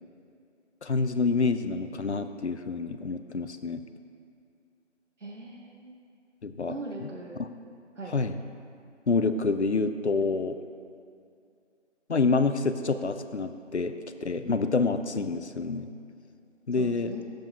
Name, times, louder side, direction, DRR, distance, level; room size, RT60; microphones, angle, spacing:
voice 1, 0.8-3.8 6.4-6.7 7.0-7.1 7.4-7.5 8.1-8.4 9.1-10.6 12.1-13.9 14.2-15.9 16.7-17.1, left 4 dB, 65° left, 9 dB, 0.5 m, -27 dB
voice 2, 5.2-6.0 6.7-7.4 8.0-8.1 16.8-17.2, right 2 dB, 75° right, -1 dB, 1.1 m, -40 dB
11.5 x 7.6 x 2.8 m, 2.4 s
figure-of-eight pair, 175°, 37 cm